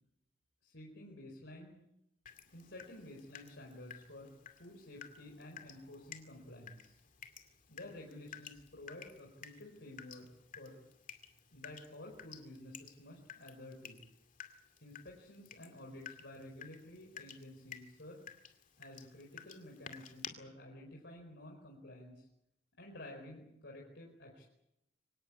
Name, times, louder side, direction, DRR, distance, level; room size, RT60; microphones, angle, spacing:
voice 1, 0.6-1.8 2.5-7.0 7.7-10.3 10.6-10.8 11.5-14.0 14.8-18.2 18.8-22.3 22.8-24.4, left 1 dB, 65° left, -1 dB, 4.7 m, -52 dB
Water tap faucet / Drip, 2.3-20.3, left 8 dB, 45° left, 2.4 m, -54 dB
25.0 x 18.0 x 8.5 m, 0.82 s
head